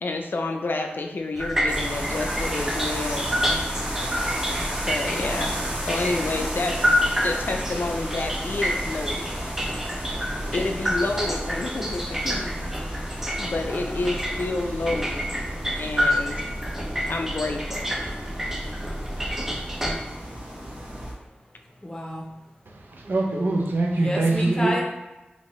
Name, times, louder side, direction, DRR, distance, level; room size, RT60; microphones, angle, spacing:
voice 1, 0.0-3.3 4.9-5.5 5.8-6.8 7.2-9.5 10.5-13.1 13.4-15.3 15.8-16.4 17.1-17.9, left 2 dB, 65° left, 4 dB, 0.3 m, -29 dB
sound 1, 1.4-19.9, equal, 10° right, 0.5 m, -28 dB
sound 2, 1.7-21.1, equal, 30° right, 0.8 m, -34 dB
voice 2, 21.2-22.3 23.9-24.8, equal, 20° left, -1 dB, 0.8 m, -30 dB
voice 3, 22.7-24.8, right 2 dB, 65° right, 0 dB, 0.5 m, -24 dB
2.8 x 2.6 x 3.0 m, 1.1 s
cardioid pair, 50°, 4 cm